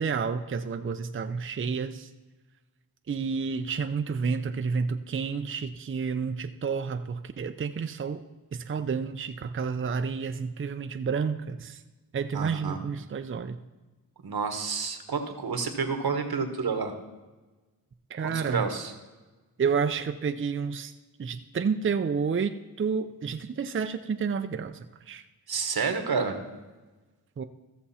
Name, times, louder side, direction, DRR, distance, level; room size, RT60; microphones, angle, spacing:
voice 1, 0.0-2.1 3.1-8.2 8.5-11.8 12.1-13.6 18.1-18.6 19.6-20.9 21.2-24.8 25.1-25.2 27.4-27.5, right 5 dB, 35° right, 8 dB, 0.5 m, -30 dB
voice 2, 12.3-12.8 14.2-16.9 18.2-18.9 25.5-26.4, right 5 dB, 75° right, 6 dB, 1.3 m, -29 dB
14.5 x 6.8 x 4.2 m, 1.2 s
wide cardioid pair, 75°, 37 cm